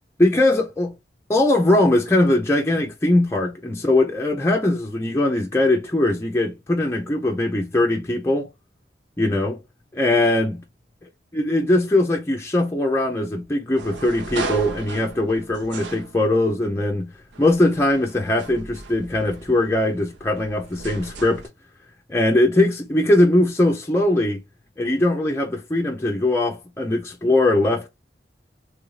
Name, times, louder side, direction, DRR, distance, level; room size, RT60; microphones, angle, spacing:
voice 1, 0.2-0.9 1.3-8.5 9.2-9.6 9.9-10.6 11.3-17.1 17.4-21.4 22.1-24.4 24.8-27.9, left 1 dB, 15° left, 0.4 m, -20 dB
sound 1, 13.8-16.7 17.3-21.5, right 3 dB, 90° right, 0.7 m, -36 dB
3.1 x 2.5 x 3.1 m
head